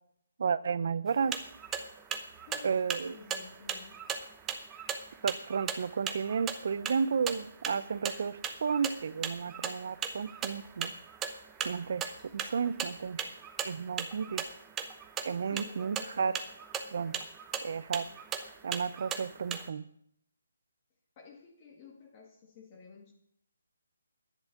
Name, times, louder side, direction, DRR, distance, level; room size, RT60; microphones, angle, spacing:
voice 1, 0.4-1.4 2.6-3.1 5.2-10.9 11.6-13.3 13.6-14.4 15.2-16.4 16.9-17.2 17.6-18.1 18.6-19.8, right 6 dB, 55° right, 17 dB, 0.7 m, -32 dB
sound 1, 1.1-19.7, right 7 dB, 15° right, 0.8 m, -39 dB
voice 2, 2.5-4.0 15.4-16.3 21.2-23.1, left 5 dB, 30° left, 0 dB, 1.8 m, -52 dB
10.5 x 10.5 x 6.0 m, 0.71 s
hypercardioid pair, 155°, 0 cm